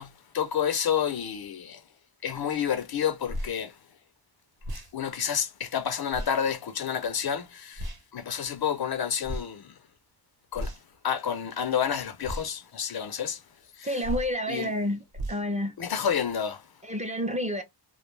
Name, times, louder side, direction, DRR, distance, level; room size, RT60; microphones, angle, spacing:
voice 1, 0.0-1.8 2.2-3.8 4.9-9.7 10.5-10.7 11.0-13.4 13.8-14.0 14.5-14.7 15.8-16.6, left 8 dB, 55° left, 0.5 m, -29 dB
sound 1, 3.3-3.5 4.6-4.9 6.1-6.3 7.8-8.0 9.2-9.5 10.5-11.0 12.2-12.5 14.0-14.3 15.1-15.4, equal, 55° right, 0.9 m, -34 dB
voice 2, 13.8-15.0 15.3-15.7 16.9-17.6, equal, 15° right, 0.5 m, -29 dB
2.2 x 2.2 x 3.0 m
wide cardioid pair, 115°, 45 cm